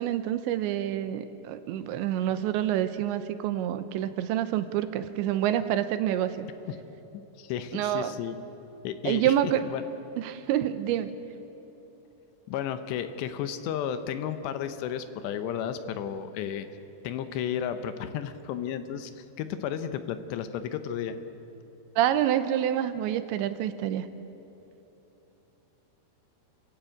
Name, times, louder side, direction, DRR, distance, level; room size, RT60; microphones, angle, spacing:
voice 1, 0.0-6.5 7.7-8.1 9.1-9.7 10.2-11.1 22.0-24.1, right 11 dB, 85° right, 10 dB, 3.1 m, -27 dB
voice 2, 7.1-8.4 8.8-9.8 12.5-16.7 17.0-21.2, left 9 dB, 80° left, 10 dB, 3.0 m, -33 dB
29.0 x 15.0 x 8.5 m, 3.0 s
omnidirectional pair, 5.2 m